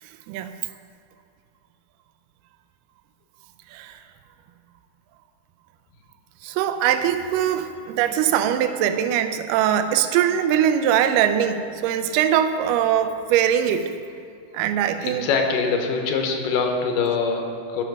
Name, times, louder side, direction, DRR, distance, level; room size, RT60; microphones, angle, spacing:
voice 1, 6.4-13.9 14.5-15.3, right 9 dB, 85° right, 9 dB, 2.2 m, -22 dB
voice 2, 15.0-17.8, left 5 dB, 85° left, 3 dB, 2.6 m, -23 dB
11.5 x 5.5 x 6.0 m, 2.4 s
omnidirectional pair, 3.8 m